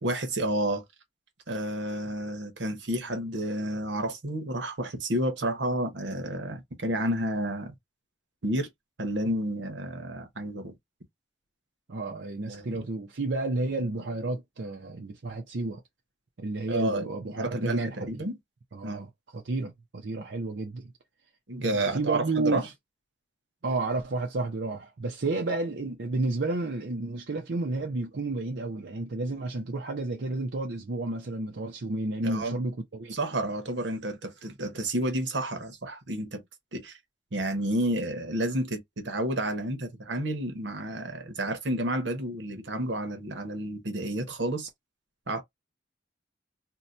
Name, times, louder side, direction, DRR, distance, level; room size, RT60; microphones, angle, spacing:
voice 1, 0.0-0.8 1.5-7.7 8.4-8.7 9.0-10.7 12.4-12.9 16.7-17.1 17.4-18.4 18.8-19.0 21.5-22.6 32.2-32.6 33.1-36.4 36.7-37.0 37.3-44.7 45.3-45.4, right 1 dB, 90° right, 1.0 m, -30 dB
voice 2, 11.9-15.8 16.4-18.2 18.7-20.9 21.6-22.7 23.6-33.1, right 2 dB, 75° right, 0.7 m, -31 dB
2.9 x 2.2 x 3.8 m
head